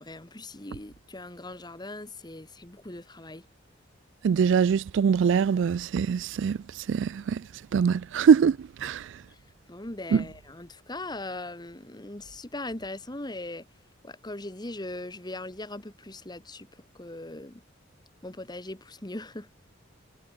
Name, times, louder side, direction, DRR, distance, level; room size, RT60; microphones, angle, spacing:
voice 1, 0.0-3.5 8.8-8.9 9.3-9.4 9.7-13.7 14.0-17.6 18.2-19.5, left 2 dB, 20° left, 1.7 m, -40 dB
voice 2, 4.2-6.6 6.9-7.4 7.7-9.1 10.1-10.2, right 6 dB, 65° right, 0.3 m, -23 dB
head